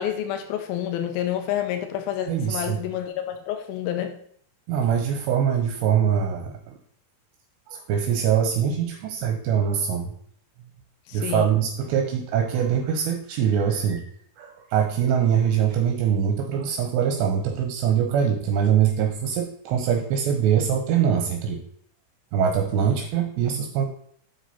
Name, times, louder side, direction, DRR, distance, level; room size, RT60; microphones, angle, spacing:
voice 1, 0.0-4.2 11.1-11.5, left 10 dB, 85° left, 6 dB, 2.1 m, -29 dB
voice 2, 2.3-2.8 4.7-6.8 7.7-10.1 11.1-14.1 14.4-21.6 22.3-23.9, right 8 dB, 80° right, 4 dB, 2.8 m, -23 dB
7.4 x 6.4 x 4.2 m, 0.62 s
omnidirectional pair, 5.3 m